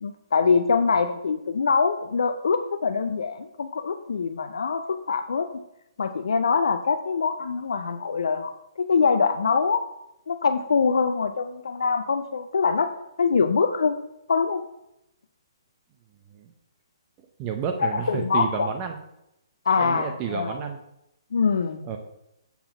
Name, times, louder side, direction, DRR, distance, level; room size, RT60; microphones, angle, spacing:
voice 1, 0.0-5.6 6.0-9.8 10.3-12.9 13.2-14.0 14.3-14.6 17.8-18.7 19.7-20.6 21.3-21.8, left 5 dB, 75° left, 8 dB, 0.5 m, -24 dB
voice 2, 17.4-19.0 19.8-20.8 21.8-22.0, right 7 dB, 30° right, 4 dB, 0.7 m, -30 dB
7.0 x 3.8 x 5.9 m, 0.85 s
hypercardioid pair, 140°, 3 cm